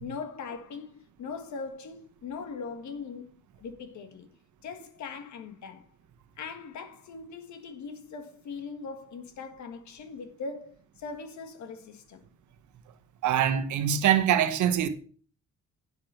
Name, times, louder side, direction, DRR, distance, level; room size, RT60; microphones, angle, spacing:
voice 1, 0.0-3.3 3.6-4.3 4.6-5.9 6.4-12.2, left 5 dB, 70° left, 1.6 m, -40 dB
voice 2, 13.2-14.9, right 10 dB, 75° right, 1.1 m, -23 dB
9.6 x 5.8 x 6.6 m
cardioid pair, 90°, 30 cm